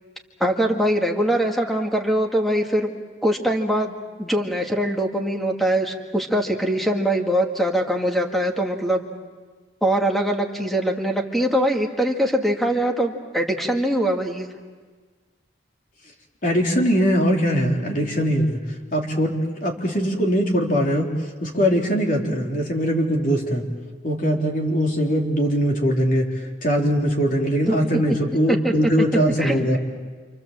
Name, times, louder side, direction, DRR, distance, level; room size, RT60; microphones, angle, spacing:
voice 1, 0.4-2.9 3.2-9.0 9.8-14.5 27.7-28.2 28.5-28.7 29.4-29.8, right 1 dB, ahead, 2 dB, 2.1 m, -22 dB
voice 2, 16.4-18.6 18.9-21.1 21.4-23.6 24.0-26.3 26.6-29.8, equal, 45° left, 0 dB, 3.9 m, -21 dB
28.0 x 27.5 x 7.6 m, 1.5 s
head